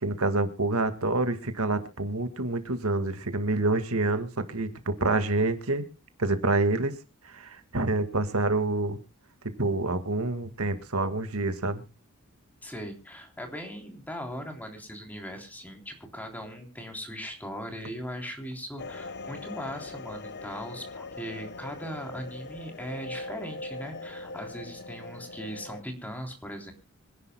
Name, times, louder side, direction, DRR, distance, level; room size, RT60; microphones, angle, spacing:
voice 1, 0.0-5.8 6.2-6.9 7.2-9.0 9.4-11.8, right 2 dB, 80° right, 9 dB, 1.9 m, -27 dB
voice 2, 12.6-26.7, equal, 10° left, 3 dB, 3.3 m, -39 dB
sound 1, 18.8-25.8, left 2 dB, 55° left, 1.0 m, -41 dB
26.0 x 11.0 x 2.2 m, 0.30 s
head